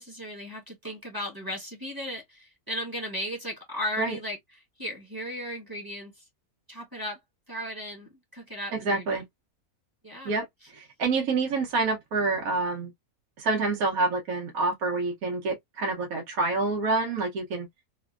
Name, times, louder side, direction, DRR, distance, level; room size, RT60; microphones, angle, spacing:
voice 1, 0.0-4.4 4.8-6.3 6.7-7.2 7.5-9.2 10.0-10.7, equal, 15° right, 1.0 m, -36 dB
voice 2, 8.7-9.2 10.2-12.9 13.4-17.7, right 3 dB, 75° right, 1.3 m, -27 dB
3.1 x 2.2 x 2.3 m
omnidirectional pair, 1.6 m